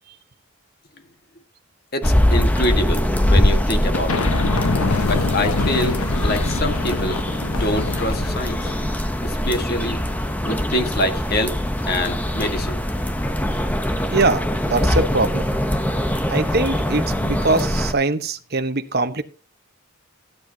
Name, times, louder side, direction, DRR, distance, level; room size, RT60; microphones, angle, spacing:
voice 1, 1.9-4.3 5.1-8.7 9.2-10.0 10.4-11.5 11.9-12.8, left 1 dB, 45° left, 1.7 m, -25 dB
sound 1, 2.0-17.9, equal, 5° left, 0.8 m, -22 dB
sound 2, 3.9-8.9, left 3 dB, 85° left, 1.0 m, -25 dB
voice 2, 14.1-15.5 16.3-19.2, right 3 dB, 45° right, 1.1 m, -22 dB
15.5 x 9.4 x 2.8 m
head